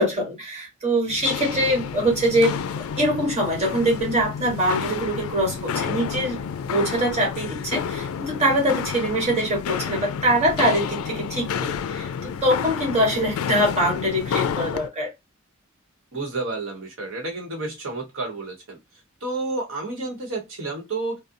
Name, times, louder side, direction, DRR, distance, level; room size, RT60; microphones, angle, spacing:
voice 1, 0.0-6.4 6.7-15.1, right 1 dB, 35° right, 1.4 m, -23 dB
Walk footsteps, 1.1-14.9, left 7 dB, 90° left, 0.3 m, -30 dB
voice 2, 16.1-18.8 19.2-21.2, right 3 dB, 70° right, 1.1 m, -30 dB
2.5 x 2.2 x 2.6 m
head